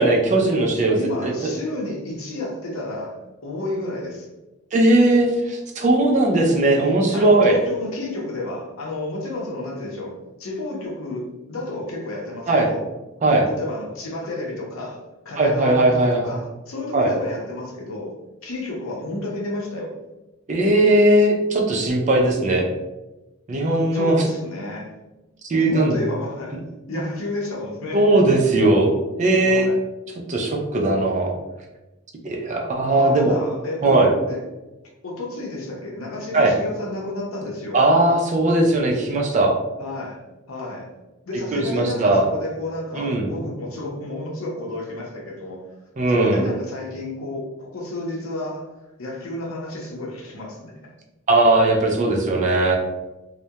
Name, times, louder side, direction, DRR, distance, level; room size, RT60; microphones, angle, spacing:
voice 1, 0.0-1.3 4.7-7.6 12.5-12.7 13.2-13.5 15.4-16.3 16.9-17.1 20.5-22.7 23.5-24.2 25.5-26.0 26.9-27.0 27.9-29.7 30.3-31.4 32.2-33.3 33.8-34.1 36.3-36.5 37.7-39.5 41.5-42.3 43.0-43.3 46.0-46.4 51.3-52.7, right 2 dB, 35° right, 1 dB, 0.4 m, -18 dB
voice 2, 0.9-4.3 7.1-12.8 13.5-18.1 18.4-20.0 23.9-24.9 25.5-28.1 29.4-29.8 32.9-34.4 35.0-37.8 39.8-40.9 41.3-45.6 46.1-48.7 49.0-50.9, left 2 dB, 90° left, -1 dB, 0.7 m, -31 dB
2.2 x 2.1 x 2.8 m, 1.0 s
head